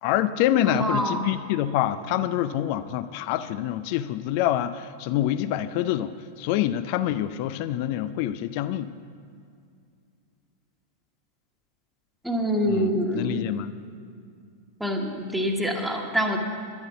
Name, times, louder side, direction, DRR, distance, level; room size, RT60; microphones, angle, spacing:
voice 1, 0.0-8.9 12.7-13.7, left 12 dB, 45° left, 13 dB, 0.4 m, -26 dB
voice 2, 0.6-1.3 12.2-13.5 14.8-16.4, equal, 5° right, 1 dB, 1.4 m, -26 dB
11.5 x 10.5 x 8.1 m, 2.3 s
figure-of-eight pair, 90°, 0 cm